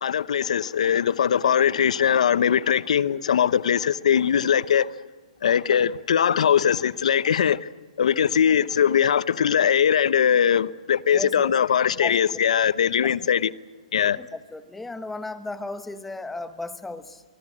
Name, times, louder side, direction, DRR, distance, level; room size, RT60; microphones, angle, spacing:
voice 1, 0.0-4.9 5.4-7.7 8.0-13.5 13.9-14.2, left 8 dB, 65° left, 0.8 m, -21 dB
voice 2, 11.1-11.5 12.0-12.4 13.0-13.2 14.2-17.2, left 2 dB, 5° left, 0.9 m, -35 dB
24.5 x 22.0 x 8.7 m
hypercardioid pair, 170°, 4 cm